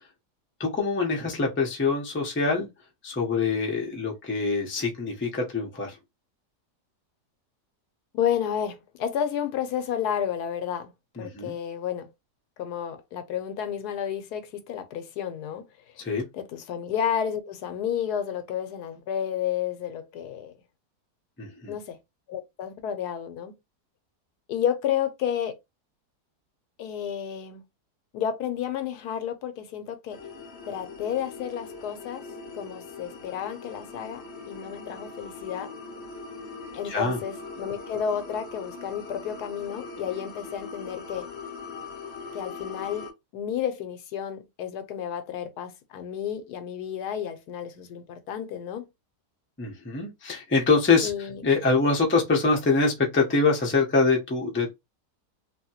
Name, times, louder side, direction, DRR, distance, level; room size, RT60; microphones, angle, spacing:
voice 1, 0.6-2.7 3.0-6.0 11.2-11.5 16.0-16.3 21.4-21.7 36.8-37.2 49.6-51.1 51.4-54.7, left 4 dB, 15° left, 0.5 m, -24 dB
voice 2, 8.1-10.9 11.2-12.1 12.6-15.6 16.3-20.5 21.7-22.0 22.3-23.5 24.5-25.6 26.8-27.6 28.1-30.2 30.7-32.2 32.5-35.7 36.7-41.3 42.3-48.9 51.0-51.4, left 9 dB, 80° left, 1.1 m, -31 dB
sound 1, 30.1-43.1, left 4 dB, 50° left, 0.9 m, -41 dB
2.9 x 2.7 x 2.8 m
omnidirectional pair, 1.7 m